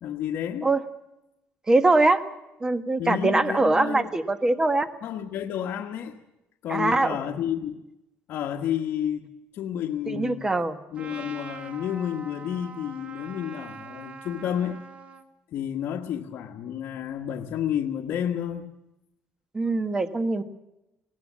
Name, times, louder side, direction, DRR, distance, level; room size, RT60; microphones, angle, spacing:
voice 1, 0.0-0.7 3.0-4.1 5.0-6.2 6.6-7.8 8.3-10.5 10.9-14.8 15.5-18.7, left 9 dB, 65° left, 1.4 m, -31 dB
voice 2, 1.7-2.2 2.6-4.9 6.7-7.2 10.1-10.8 19.5-20.4, right 2 dB, 15° right, 1.3 m, -22 dB
Trumpet, 11.0-15.2, right 5 dB, 30° right, 2.1 m, -43 dB
19.0 x 18.5 x 7.4 m
cardioid pair, 130°, 4 cm